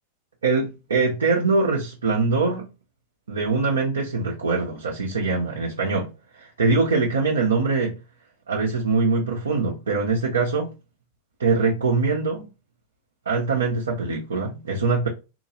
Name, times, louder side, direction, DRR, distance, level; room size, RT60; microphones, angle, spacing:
voice 1, 0.4-2.7 3.3-8.0 8.5-10.7 11.4-12.5 13.3-15.1, right 4 dB, 70° right, 0.6 m, -23 dB
3.7 x 2.3 x 3.0 m
figure-of-eight pair, 90°, 0 cm